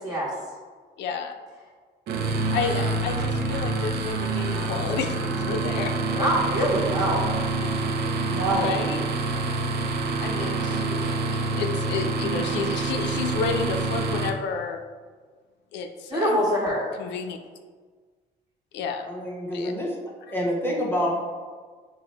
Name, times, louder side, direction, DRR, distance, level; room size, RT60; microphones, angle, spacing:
voice 1, 1.0-1.3 2.5-6.3 7.6-7.7 8.6-9.0 10.2-14.8 15.7-16.4 17.0-17.4 18.7-19.1 19.5-19.7, left 5 dB, 90° left, 5 dB, 0.5 m, -31 dB
sound 1, 2.1-14.3, right 3 dB, 65° right, 0.5 m, -27 dB
voice 2, 6.1-7.2 8.3-8.8 16.1-16.9, right 1 dB, 20° right, -6 dB, 1.5 m, -24 dB
voice 3, 19.1-20.0 20.3-21.2, equal, 10° left, -3 dB, 0.9 m, -27 dB
5.8 x 2.2 x 4.1 m, 1.5 s
cardioid pair, 140°, 18 cm